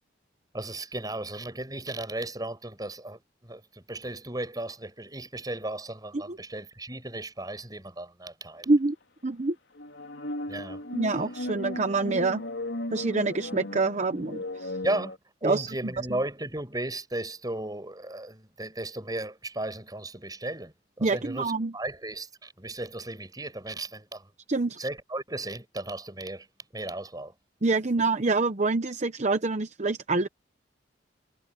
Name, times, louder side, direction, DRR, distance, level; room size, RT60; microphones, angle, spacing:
voice 1, 0.5-8.7 10.5-10.8 14.8-24.3 24.8-26.5 26.7-27.3, right 1 dB, 20° right, 5.7 m, -35 dB
voice 2, 9.2-9.6 10.9-12.4 12.9-14.7 15.4-15.7 21.0-21.7 24.5-24.8 27.6-30.3, right 3 dB, 40° right, 0.8 m, -26 dB
sound 1, 9.8-15.2, left 1 dB, 80° left, 3.9 m, -36 dB
head